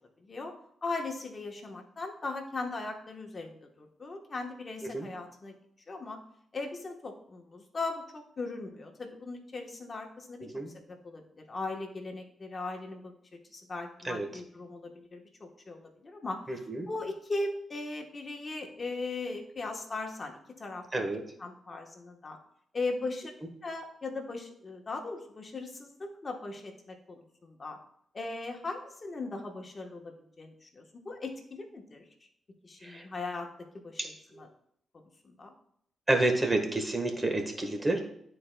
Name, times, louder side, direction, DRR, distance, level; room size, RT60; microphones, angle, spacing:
voice 1, 0.2-0.5 0.8-5.5 5.9-6.2 6.5-20.8 21.4-22.4 22.7-23.3 23.6-27.8 28.1-32.1 32.6-33.5 33.7-34.1 34.4-34.5 35.2-35.5, left 3 dB, 40° left, 2 dB, 1.1 m, -38 dB
voice 2, 16.5-16.9 20.9-21.2 32.8-33.0 34.0-34.1 36.1-38.0, right 2 dB, 20° right, 4 dB, 1.3 m, -29 dB
12.0 x 4.4 x 2.2 m, 0.70 s
cardioid pair, 75°, 0 cm